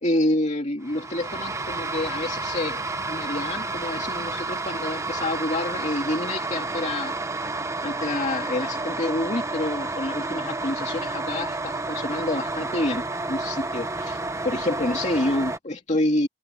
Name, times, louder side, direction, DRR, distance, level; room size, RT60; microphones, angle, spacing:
voice 1, 0.0-7.1 7.8-16.3, left 1 dB, 40° left, 2.4 m, -28 dB
sound 1, 0.8-15.6, right 3 dB, 15° right, 1.0 m, -30 dB
head